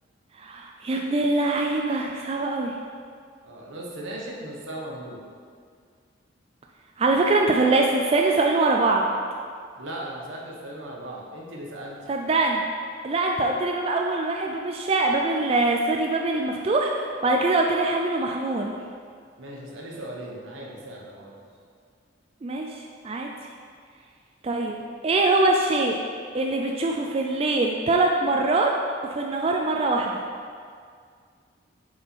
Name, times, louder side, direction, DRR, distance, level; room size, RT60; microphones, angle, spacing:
voice 1, 0.4-2.7 7.0-9.1 12.1-12.6 13.0-18.8 22.4-23.3 24.4-26.0 26.3-28.7 29.2-30.2, right 2 dB, 30° right, 1 dB, 0.3 m, -23 dB
voice 2, 3.4-5.2 9.8-12.0 19.4-21.3, right 1 dB, 80° right, -2 dB, 1.1 m, -37 dB
6.4 x 4.2 x 4.4 m, 2.1 s
head